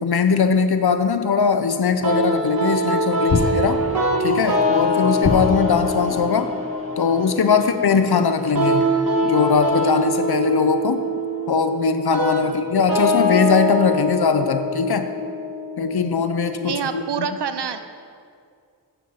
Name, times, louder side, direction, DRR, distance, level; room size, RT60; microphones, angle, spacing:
voice 1, 0.0-3.8 4.2-6.5 7.0-8.9 9.2-11.1 11.5-15.1 15.8-17.3, left 5 dB, 70° left, 9 dB, 0.7 m, -20 dB
sound 1, 2.0-2.1 3.3-4.1 5.2-6.0, left 3 dB, 35° left, 0.7 m, -24 dB
sound 2, 2.0-17.0, equal, 60° right, 1.7 m, -24 dB
sound 3, 3.3-12.8 13.2-13.8, equal, 35° right, 1.9 m, -37 dB
voice 2, 16.6-17.8, right 7 dB, 85° right, 9 dB, 0.7 m, -27 dB
7.1 x 6.7 x 7.9 m, 2.3 s
wide cardioid pair, 65°, 40 cm